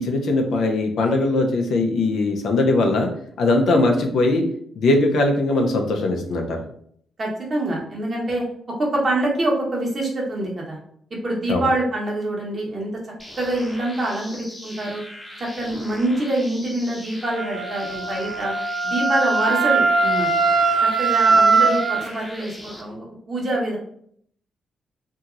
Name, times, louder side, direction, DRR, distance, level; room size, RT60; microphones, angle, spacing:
voice 1, 0.0-3.1 3.4-4.4 4.8-6.6 11.5-11.7, left 2 dB, 65° left, 2 dB, 0.5 m, -20 dB
voice 2, 7.2-8.4 8.8-10.8 11.2-12.9 13.4-15.0 15.4-18.5 18.8-20.3 20.8-23.8, right 1 dB, 45° right, -2 dB, 1.1 m, -25 dB
sound 1, 13.2-22.8, equal, 5° left, 0.8 m, -40 dB
Wind instrument woodwind instrument, 17.3-22.0, right 4 dB, 65° right, 0.3 m, -20 dB
2.7 x 2.7 x 2.4 m, 0.65 s
hypercardioid pair, 45°, 0 cm